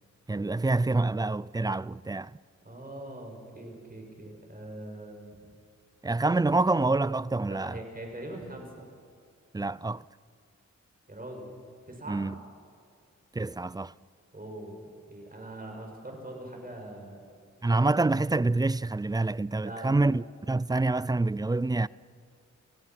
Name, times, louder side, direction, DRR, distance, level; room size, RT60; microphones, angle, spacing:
voice 1, 0.3-2.4 6.0-7.8 9.5-10.0 12.1-12.4 13.3-13.9 17.6-21.9, right 2 dB, 15° right, 0.4 m, -27 dB
voice 2, 2.6-5.4 7.5-8.9 11.1-11.5 11.9-12.2 14.3-14.8 15.1-17.2 19.5-19.9, right 1 dB, 30° right, 6.8 m, -42 dB
29.0 x 17.0 x 6.0 m
cardioid pair, 60°, 30 cm